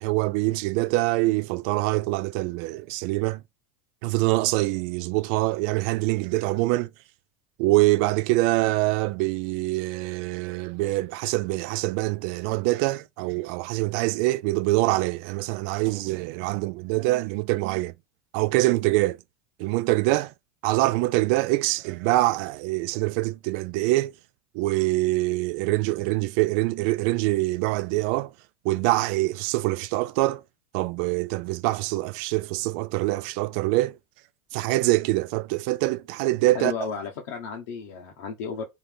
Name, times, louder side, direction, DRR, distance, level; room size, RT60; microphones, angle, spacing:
voice 1, 0.0-3.4 4.0-6.9 7.6-17.9 18.3-19.2 19.6-20.3 20.6-24.1 24.5-28.3 28.6-30.4 30.7-34.0 34.5-36.7, right 19 dB, 65° right, 0.3 m, -24 dB
voice 2, 36.5-38.6, left 6 dB, 70° left, 1.1 m, -33 dB
4.0 x 2.6 x 3.6 m
hypercardioid pair, 100°, 7 cm